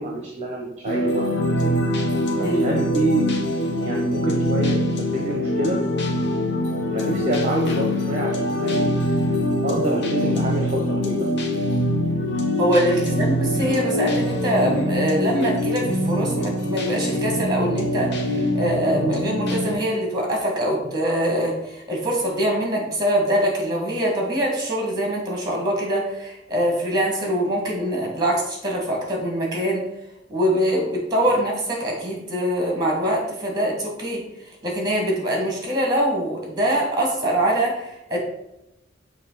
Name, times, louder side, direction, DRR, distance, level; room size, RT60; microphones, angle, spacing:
voice 1, 0.0-1.7 2.4-3.3 3.6-5.8 6.9-9.3 9.6-11.2 13.0-13.1 31.3-31.4, right 1 dB, 40° right, -1 dB, 0.9 m, -27 dB
sound 1, 0.8-19.7, left 1 dB, 65° left, 1.0 m, -23 dB
voice 2, 2.4-2.8 12.6-29.8 30.3-34.2 34.6-38.2, equal, 20° right, -1 dB, 2.0 m, -23 dB
6.5 x 3.2 x 5.9 m, 0.85 s
head